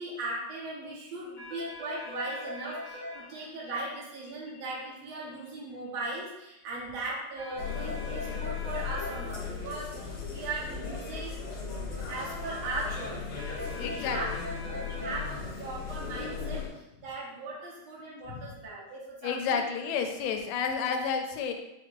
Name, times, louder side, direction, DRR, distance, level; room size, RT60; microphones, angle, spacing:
voice 1, 0.0-11.3 11.8-13.3 13.6-14.3 14.7-19.6, right 2 dB, 60° right, -6 dB, 2.1 m, -38 dB
sound 1, 1.4-3.2 7.4-9.2 13.4-15.2, left 1 dB, 80° right, 0.6 m, -40 dB
sound 2, 7.6-16.7, left 5 dB, 65° left, 1.8 m, -37 dB
voice 2, 13.8-14.5 18.3-18.5 19.2-21.5, left 6 dB, 85° left, 5 dB, 2.2 m, -31 dB
6.3 x 3.1 x 2.5 m, 0.91 s
omnidirectional pair, 3.8 m